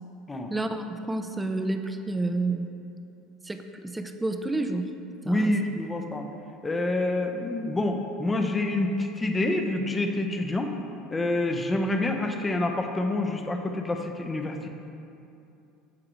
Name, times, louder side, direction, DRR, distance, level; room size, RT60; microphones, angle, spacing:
voice 1, 0.5-2.7 3.4-4.9 5.3-5.5, right 2 dB, 15° right, 7 dB, 0.6 m, -29 dB
voice 2, 5.2-6.3 6.6-10.7 11.1-14.7, left 2 dB, 20° left, 4 dB, 0.8 m, -27 dB
14.5 x 4.8 x 3.1 m, 2.7 s
hypercardioid pair, 80°, 0 cm